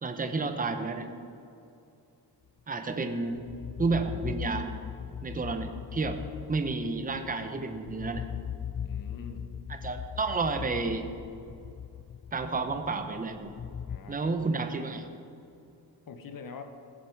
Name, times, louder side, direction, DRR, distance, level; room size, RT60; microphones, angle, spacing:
voice 1, 0.0-1.1 2.7-3.5 3.8-4.8 5.2-6.2 6.5-8.3 9.7-11.1 12.3-13.5 14.1-15.1, right 3 dB, 20° right, 7 dB, 0.6 m, -31 dB
sound 1, 2.9-14.0, left 8 dB, 35° left, 0.4 m, -39 dB
voice 2, 8.8-9.5 13.9-14.4 16.1-16.6, left 5 dB, 55° left, 7 dB, 0.8 m, -44 dB
15.0 x 6.7 x 4.6 m, 2.6 s
wide cardioid pair, 160°, 41 cm